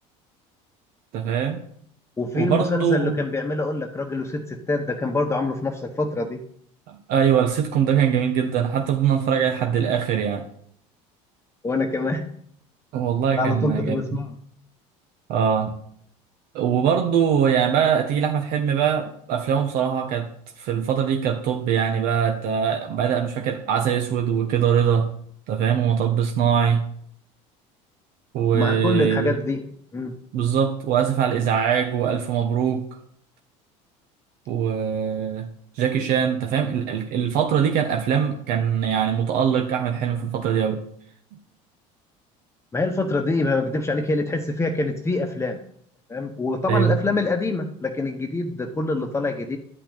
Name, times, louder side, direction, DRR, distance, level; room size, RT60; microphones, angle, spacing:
voice 1, 1.1-1.6 2.3-3.2 6.9-10.4 12.9-14.0 15.3-15.8 16.5-20.3 20.6-25.1 25.5-26.8 28.3-29.3 30.3-32.8 34.5-35.5 35.7-40.8 46.7-47.0, right 8 dB, 65° right, 4 dB, 1.4 m, -22 dB
voice 2, 2.2-6.4 11.6-12.2 13.4-14.3 28.5-29.6 29.9-30.1 42.7-45.6 46.1-49.6, left 2 dB, 15° left, 4 dB, 1.2 m, -25 dB
11.5 x 5.8 x 8.7 m, 0.66 s
supercardioid pair, 110°, 16 cm